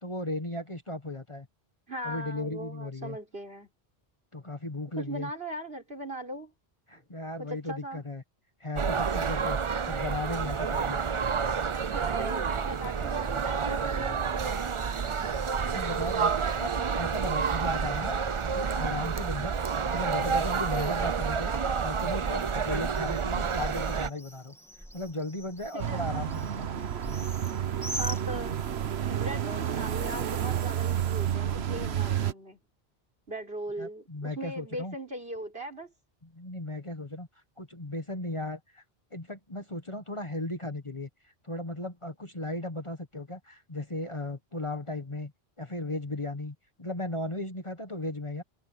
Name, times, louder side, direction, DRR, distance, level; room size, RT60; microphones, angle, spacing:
voice 1, 0.0-1.5 2.0-3.2 4.3-5.3 6.9-8.2 8.6-9.6 9.8-11.0 15.7-18.2 18.5-19.6 19.9-21.5 21.8-24.5 24.9-26.7 33.8-34.9 36.3-37.3 37.6-38.8 39.1-41.1 41.4-45.3 45.6-48.4, left 1 dB, 30° left, 1.4 m, -36 dB
voice 2, 1.9-3.7 5.0-6.5 6.9-7.0 7.4-8.0 11.9-14.8 25.7-26.3 28.0-32.6 33.3-35.9, right 1 dB, 70° right, 5.4 m, -39 dB
sound 1, 8.8-24.1, right 6 dB, 35° right, 0.5 m, -29 dB
Bird, 21.4-28.9, equal, 5° left, 2.6 m, -44 dB
sound 2, 25.8-32.3, right 10 dB, 85° right, 1.2 m, -30 dB
omnidirectional pair, 1.0 m